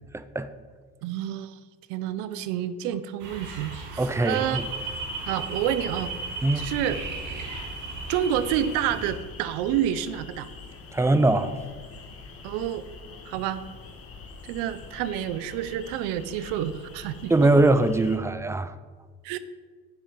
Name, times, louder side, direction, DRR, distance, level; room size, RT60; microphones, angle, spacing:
voice 1, 0.1-0.5 4.0-4.7 6.4-6.7 10.9-11.6 17.3-18.7, right 2 dB, 10° right, 0.5 m, -22 dB
voice 2, 1.0-1.6 1.9-4.6 5.3-6.1 6.6-7.0 8.1-10.5 12.4-12.8 13.3-13.6 14.4-17.5 19.2-19.4, right 10 dB, 85° right, 0.7 m, -29 dB
sound 1, 3.2-9.1, right 3 dB, 65° right, 2.1 m, -36 dB
sound 2, 4.4-18.2, left 4 dB, 45° left, 1.5 m, -44 dB
7.7 x 7.2 x 5.3 m
supercardioid pair, 80°, 32 cm